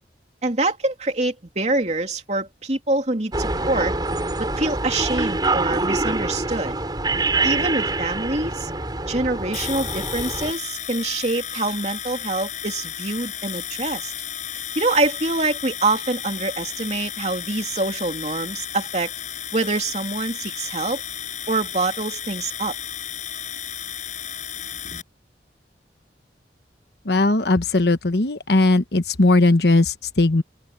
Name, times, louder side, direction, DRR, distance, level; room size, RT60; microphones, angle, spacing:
voice 1, 0.4-4.0 4.4-6.7 7.4-8.7 9.0-14.1 14.7-19.1 19.5-21.0 21.5-22.7, right 2 dB, 40° right, 2.9 m, -25 dB
sound 1, 3.3-10.5, right 2 dB, 25° right, 4.0 m, -25 dB
sound 2, 9.5-25.0, left 10 dB, 45° left, 6.6 m, -33 dB
voice 2, 27.1-30.4, left 2 dB, 70° left, 1.2 m, -18 dB
open air
head